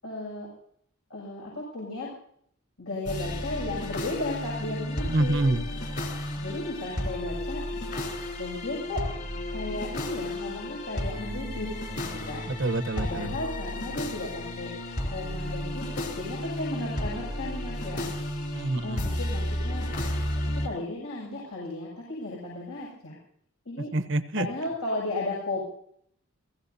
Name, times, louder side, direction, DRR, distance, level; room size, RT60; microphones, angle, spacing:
voice 1, 0.0-0.5 1.1-2.1 2.8-5.4 6.4-7.6 8.4-9.1 9.5-12.5 13.0-14.7 15.1-18.1 18.8-19.8 20.4-23.1 23.7-23.9 24.4-25.6, left 2 dB, 80° left, -4 dB, 6.9 m, -35 dB
sound 1, 3.1-20.7, left 1 dB, 45° left, 3.7 m, -33 dB
voice 2, 5.0-5.6 12.5-13.3 18.5-19.0 23.9-24.5, right 2 dB, 55° right, 11 dB, 1.0 m, -27 dB
29.5 x 16.5 x 2.8 m, 0.65 s
head